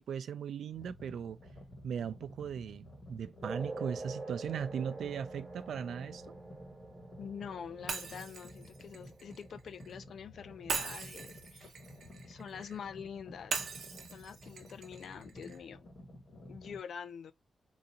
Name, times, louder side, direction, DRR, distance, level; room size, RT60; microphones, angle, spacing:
voice 1, 0.0-1.4 1.8-6.4, right 8 dB, 90° right, 0.4 m, -38 dB
sound 1, 0.7-16.8, left 1 dB, 40° left, 1.6 m, -53 dB
sound 2, 3.4-10.4, right 2 dB, 20° right, 1.1 m, -46 dB
voice 2, 7.2-11.7 12.2-13.6 14.1-15.9 16.5-17.3, left 7 dB, 70° left, 0.4 m, -45 dB
Shatter, 7.9-9.9 10.7-12.8 13.5-15.6, right 5 dB, 65° right, 0.7 m, -40 dB
3.9 x 2.4 x 2.8 m
wide cardioid pair, 150°, 0 cm